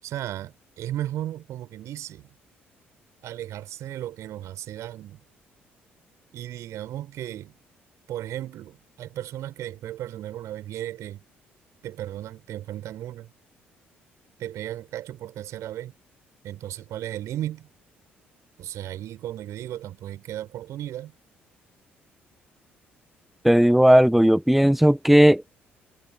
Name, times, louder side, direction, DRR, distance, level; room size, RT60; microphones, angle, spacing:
voice 1, 0.0-2.3 3.2-5.2 6.3-7.5 8.1-11.2 11.8-13.3 14.4-15.9 16.4-17.7 18.6-21.1, right 12 dB, 55° right, 7.6 m, -35 dB
voice 2, 23.4-25.4, equal, 5° right, 1.3 m, -16 dB
figure-of-eight pair, 45°, 6 cm